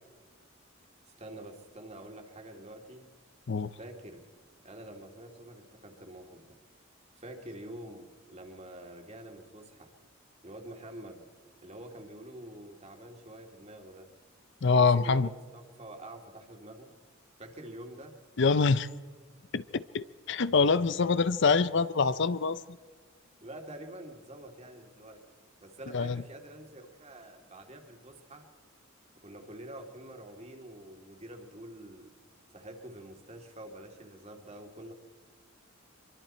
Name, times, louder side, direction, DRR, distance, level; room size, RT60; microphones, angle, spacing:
voice 1, 1.1-3.1 3.8-4.2 4.6-6.4 7.2-9.9 10.4-11.2 11.6-14.1 14.8-16.9 17.4-18.1 23.4-25.2 25.6-28.5 29.2-32.1 32.5-34.9, right 1 dB, 30° right, 2.5 m, -47 dB
voice 2, 14.6-15.3 18.4-18.9 19.5-22.6 25.9-26.2, left 4 dB, 60° left, 0.6 m, -25 dB
24.5 x 23.5 x 4.4 m
head